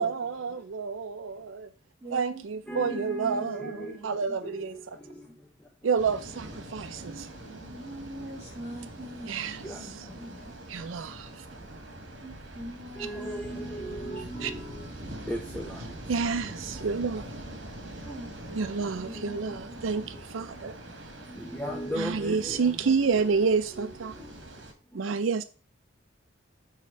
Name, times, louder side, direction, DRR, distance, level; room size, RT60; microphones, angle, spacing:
voice 1, 0.0-1.7 2.1-4.7 5.8-7.3 9.3-9.6 10.7-11.5 14.4-14.5 16.1-17.4 18.5-20.7 22.0-24.1 24.9-25.4, right 5 dB, 85° right, 0.5 m, -29 dB
voice 2, 2.0-4.4 5.2-5.3 7.4-10.6 12.2-14.6 18.0-19.8 22.3-23.3 23.8-24.3, right 1 dB, 15° right, 3.4 m, -44 dB
voice 3, 2.7-3.9 4.4-5.3 9.6-9.8 13.0-15.9 19.2-19.6 21.3-23.4 23.7-23.9 24.2-24.3, right 1 dB, 5° left, 0.7 m, -37 dB
sound 1, 6.0-24.7, right 1 dB, 65° right, 1.7 m, -44 dB
6.5 x 3.6 x 5.3 m
head